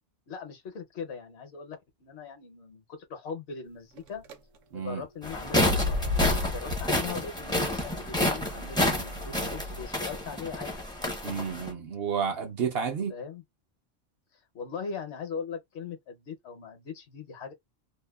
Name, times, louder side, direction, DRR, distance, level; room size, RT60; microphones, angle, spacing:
voice 1, 0.3-4.2 4.7-10.7 13.1-13.4 14.5-17.5, left 6 dB, 65° left, 0.9 m, -40 dB
sound 1, 4.0-4.3 5.4-9.8, left 3 dB, 85° right, 1.0 m, -34 dB
sound 2, 5.2-11.7, left 1 dB, 5° left, 0.4 m, -29 dB
voice 2, 11.2-13.1, right 6 dB, 60° right, 0.8 m, -31 dB
2.8 x 2.0 x 2.2 m
omnidirectional pair, 1.3 m